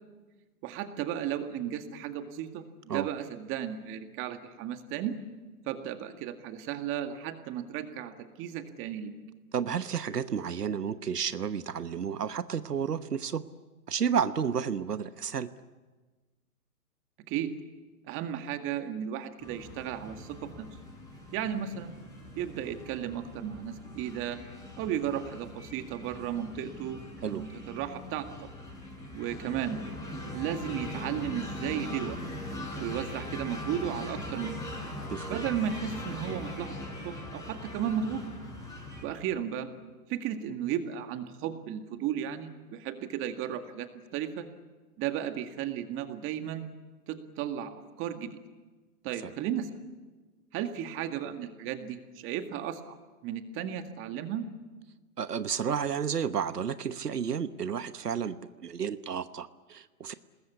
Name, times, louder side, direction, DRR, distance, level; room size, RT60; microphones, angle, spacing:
voice 1, 0.6-5.1 5.6-9.1 17.3-17.5 18.1-20.7 21.3-22.0 22.4-24.4 24.8-28.5 29.1-29.8 30.3-32.2 32.8-34.6 35.3-38.2 39.0-39.7 40.1-44.5 45.0-46.7 47.1-48.3 49.0-49.7 50.5-53.0 53.2-54.5, right 10 dB, 25° right, 7 dB, 1.9 m, -34 dB
voice 2, 9.5-13.5 13.9-15.5 27.2-27.4 35.1-35.4 49.2-49.3 55.2-58.4 58.6-60.1, right 7 dB, 90° right, 13 dB, 1.2 m, -31 dB
sound 1, 19.4-39.0, left 1 dB, 10° left, 7.1 m, -41 dB
27.5 x 20.5 x 8.5 m, 1.3 s
hypercardioid pair, 130°, 46 cm